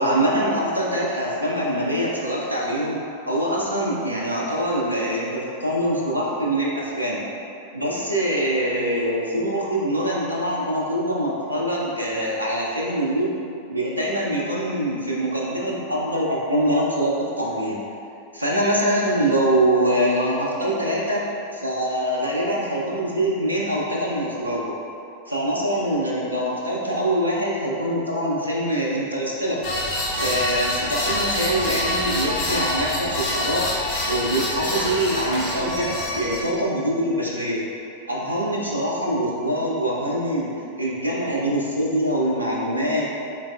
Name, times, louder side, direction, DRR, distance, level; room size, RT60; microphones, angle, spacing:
voice 1, 0.0-3.0 3.3-7.2 7.7-13.3 13.7-17.8 18.3-21.2 21.5-24.7 25.3-29.6 30.2-33.7 34.1-37.6 38.1-40.5 40.8-43.1, right 1 dB, 85° right, -4 dB, 0.4 m, -24 dB
sound 1, 29.6-36.4, left 1 dB, 50° left, 0.9 m, -26 dB
3.8 x 3.3 x 2.3 m, 2.6 s
figure-of-eight pair, 90°, 0 cm